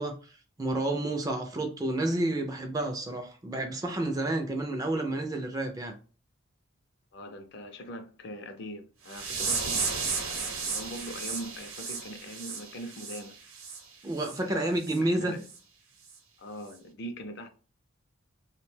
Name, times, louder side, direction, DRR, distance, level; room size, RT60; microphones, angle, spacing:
voice 1, 0.0-5.9 14.0-15.3, right 1 dB, 15° right, 0.3 m, -30 dB
voice 2, 7.1-10.0 10.3-13.4 14.4-15.5 16.4-17.5, equal, 55° left, 0.4 m, -42 dB
sound 1, 9.1-13.8 14.2-14.4 14.8-15.0 15.5-15.6 16.1-16.2, right 5 dB, 80° right, 0.8 m, -34 dB
2.6 x 2.1 x 3.1 m
head